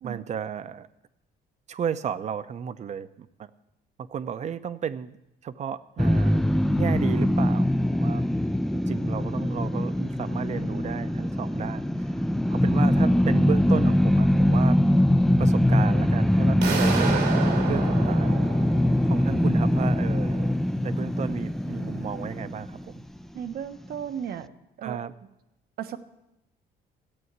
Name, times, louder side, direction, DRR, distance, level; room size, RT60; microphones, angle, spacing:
voice 1, 0.0-0.9 1.7-3.5 4.0-5.2 5.4-6.4 6.8-8.2 8.7-12.0 12.5-14.8 15.4-17.3 17.7-18.4 19.0-20.6 20.8-23.0 24.8-25.1, right 8 dB, 45° right, 14 dB, 0.7 m, -33 dB
sound 1, 6.0-23.2, left 1 dB, ahead, 0.4 m, -23 dB
sound 2, 16.6-19.5, right 6 dB, 85° right, 2.5 m, -30 dB
voice 2, 23.3-24.5 24.8-25.0 25.8-26.0, right 9 dB, 65° right, 9 dB, 1.0 m, -35 dB
14.0 x 8.5 x 8.0 m, 0.90 s
cardioid pair, 110°, 17 cm